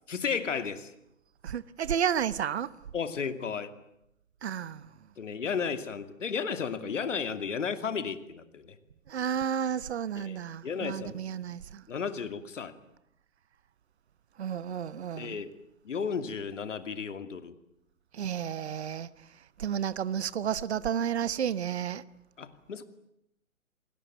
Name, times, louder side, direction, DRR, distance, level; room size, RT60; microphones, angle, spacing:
voice 1, 0.1-0.9 2.9-3.7 5.2-8.8 10.2-10.4 10.6-11.2 11.9-12.8 15.2-15.5 15.8-17.5 22.4-22.8, left 6 dB, 60° left, 2.7 m, -33 dB
voice 2, 1.4-2.7 4.4-4.9 9.1-11.8 14.4-15.4 18.1-19.1 19.6-22.0, right 8 dB, 50° right, 1.2 m, -31 dB
28.5 x 20.5 x 9.3 m
figure-of-eight pair, 140°, 41 cm